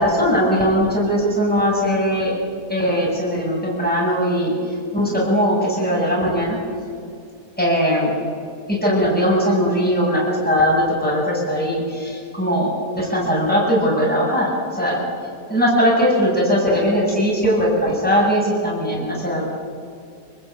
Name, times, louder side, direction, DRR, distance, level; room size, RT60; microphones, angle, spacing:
voice 1, 0.0-2.3 2.7-4.5 4.9-6.6 7.6-8.2 8.7-15.0 15.5-19.4, equal, 5° left, -4 dB, 7.4 m, -19 dB
28.5 x 20.5 x 9.2 m, 2.4 s
omnidirectional pair, 1.7 m